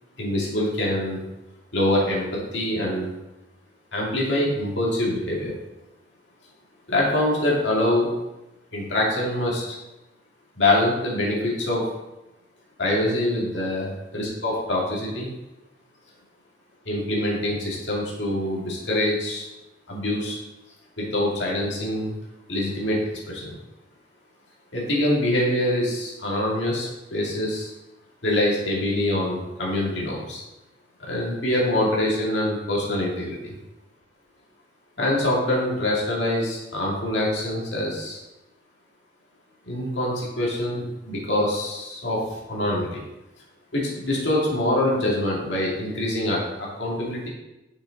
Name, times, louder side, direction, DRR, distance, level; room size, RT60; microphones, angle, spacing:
voice 1, 0.2-1.2 1.7-3.1 3.9-5.5 6.9-8.1 8.7-9.6 10.6-11.8 12.8-15.3 16.9-19.5 19.9-20.4 21.0-22.1 22.5-23.0 23.3-23.6 24.7-27.7 28.2-30.4 31.1-33.5 35.0-38.2 39.7-42.2 42.5-42.9 43.7-47.3, left 1 dB, 80° left, -5 dB, 2.2 m, -24 dB
6.4 x 6.3 x 4.0 m, 0.96 s
head